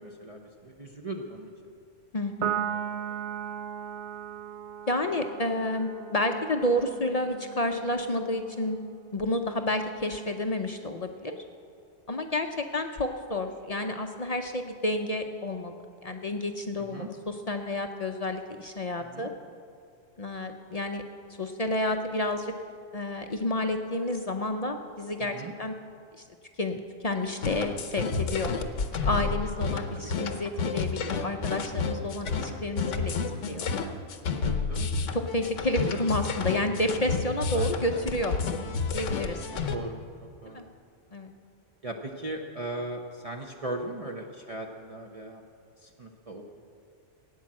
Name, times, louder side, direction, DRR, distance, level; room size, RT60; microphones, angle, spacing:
voice 1, 0.0-1.7 16.9-17.1 19.0-19.3 25.2-25.5 28.3-28.5 29.9-30.3 33.1-33.5 34.4-34.9 37.5-38.1 39.5-40.7 41.8-45.4 45.8-46.6, right 2 dB, 35° right, 0 dB, 0.8 m, -39 dB
voice 2, 2.1-2.6 4.9-8.8 9.1-11.4 12.1-15.7 16.0-19.3 20.2-21.0 21.4-22.5 22.9-25.7 26.1-26.2 26.6-28.5 29.0-33.2 33.4-33.7 35.1-38.4 38.9-39.5 40.5-40.7 41.1-41.3, left 1 dB, 40° left, 5 dB, 0.6 m, -30 dB
Piano, 2.4-9.1, right 9 dB, 70° right, 0.9 m, -37 dB
sound 1, 27.4-39.8, left 4 dB, 85° left, 1.2 m, -30 dB
16.0 x 9.3 x 7.5 m, 2.4 s
omnidirectional pair, 1.2 m